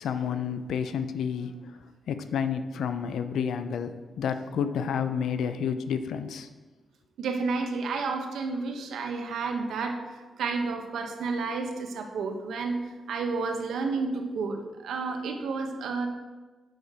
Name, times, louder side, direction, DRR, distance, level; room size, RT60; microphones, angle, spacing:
voice 1, 0.0-1.8 2.1-6.5, left 7 dB, 85° left, 10 dB, 0.5 m, -30 dB
voice 2, 7.2-12.8 13.1-16.1, right 4 dB, 90° right, 4 dB, 0.9 m, -31 dB
6.9 x 4.9 x 5.7 m, 1.3 s
wide cardioid pair, 145°, 0 cm